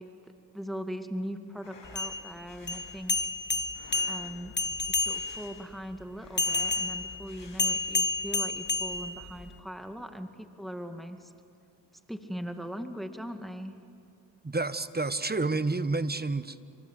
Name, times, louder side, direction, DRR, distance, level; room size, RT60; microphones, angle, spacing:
voice 1, 0.0-3.2 4.1-4.5 4.9-11.3 12.1-13.8, equal, ahead, 6 dB, 2.2 m, -40 dB
sound 1, 1.5-2.1 2.5-3.0 3.6-4.5 4.9-5.7 6.0-6.8 7.2-8.0, left 3 dB, 80° left, 8.0 m, -53 dB
sound 2, 1.8-5.5 6.4-9.6, left 3 dB, 25° left, 1.3 m, -30 dB
voice 2, 14.4-16.6, right 3 dB, 20° right, 13 dB, 1.3 m, -29 dB
28.0 x 25.5 x 8.3 m, 2.4 s
supercardioid pair, 40°, 44 cm